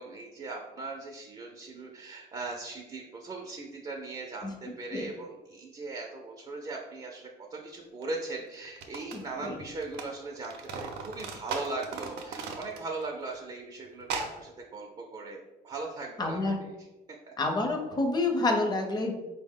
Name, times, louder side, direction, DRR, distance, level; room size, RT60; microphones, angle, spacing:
voice 1, 0.0-16.9 17.3-17.4, right 3 dB, 30° right, 0 dB, 0.5 m, -39 dB
sound 1, 8.0-8.1 8.7-10.1 10.4-13.1 13.3-13.4 14.0-14.4, right 4 dB, 75° right, 0.5 m, -37 dB
voice 2, 9.1-9.6 16.2-16.6 17.4-19.1, left 2 dB, 25° left, 3 dB, 0.7 m, -28 dB
4.3 x 2.1 x 3.6 m, 1.1 s
cardioid pair, 110°, 17 cm